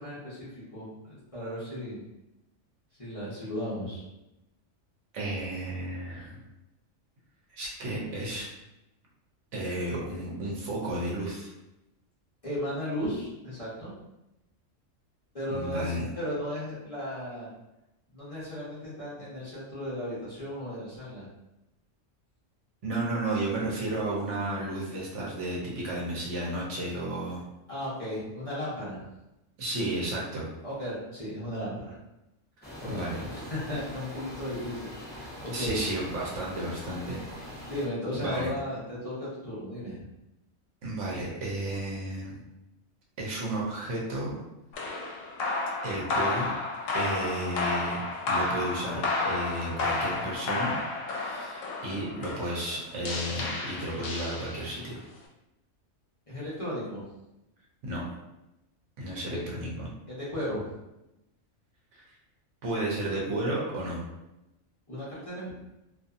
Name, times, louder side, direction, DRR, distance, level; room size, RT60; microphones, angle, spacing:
voice 1, 0.0-2.0 3.0-4.0 12.4-13.9 15.3-17.5 18.1-21.3 27.7-29.0 30.6-31.9 32.8-35.8 37.7-40.0 56.3-57.0 59.2-59.4 60.1-60.7 64.9-65.5, equal, 30° left, -10 dB, 0.8 m, -35 dB
voice 2, 5.1-6.4 7.5-8.5 9.5-11.5 15.5-16.0 22.8-27.4 29.6-30.5 32.9-33.2 35.5-37.3 38.2-38.5 40.8-42.4 43.2-44.4 45.8-46.5 46.9-48.0 48.3-50.8 51.1-55.0 57.8-58.1 59.0-59.9 61.9-62.1 62.6-64.0, right 1 dB, 70° right, -3 dB, 1.0 m, -33 dB
sound 1, 32.6-37.9, left 1 dB, 15° left, 0.4 m, -43 dB
sound 2, 44.7-54.9, left 3 dB, 80° left, 1.0 m, -31 dB
2.6 x 2.6 x 2.4 m, 0.92 s
omnidirectional pair, 1.3 m